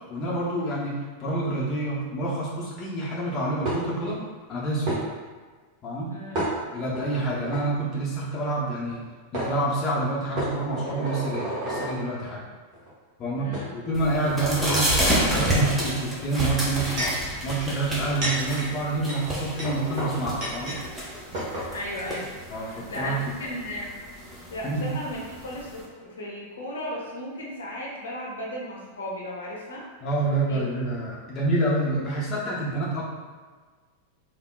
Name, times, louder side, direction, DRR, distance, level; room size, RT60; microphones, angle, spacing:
voice 1, 0.1-0.9 1.2-4.2 4.5-5.0 5.8-6.1 6.7-9.0 9.3-12.4 13.2-14.9 15.2-17.1 17.4-20.8 22.5-23.2 24.6-24.9 30.0-33.0, right 2 dB, 30° left, -6 dB, 0.6 m, -28 dB
sound 1, 3.7-4.1 4.9-5.0 6.3-7.0 7.4-7.6 8.9-9.0 9.3-9.5 10.4-12.0 12.7-12.9 13.5-13.7 14.2-15.4 16.5-17.3 17.9-20.8 21.1-21.2 21.3-21.7, right 1 dB, 40° right, 0.9 m, -31 dB
voice 2, 6.1-6.4 13.3-13.7 21.7-23.9 24.5-29.8 30.5-30.6, equal, 65° left, -3 dB, 0.7 m, -35 dB
sound 2, 13.9-25.8, right 1 dB, 10° right, 0.7 m, -30 dB
3.5 x 2.2 x 2.3 m, 1.4 s
figure-of-eight pair, 90°, 0 cm